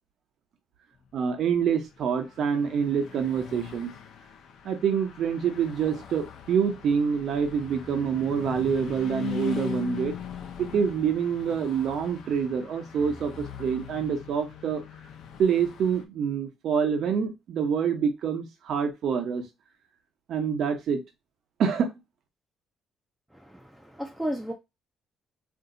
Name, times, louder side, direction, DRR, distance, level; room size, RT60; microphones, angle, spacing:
voice 1, 1.1-3.9 4.6-10.2 10.6-14.8 15.4-19.4 20.3-21.0 21.6-21.9, right 7 dB, 60° right, 0.8 m, -26 dB
Car passing by / Truck, 1.7-16.0, left 9 dB, 65° left, 0.6 m, -40 dB
voice 2, 23.3-24.5, equal, 5° right, 0.4 m, -34 dB
2.6 x 2.3 x 3.8 m
cardioid pair, 135°, 0 cm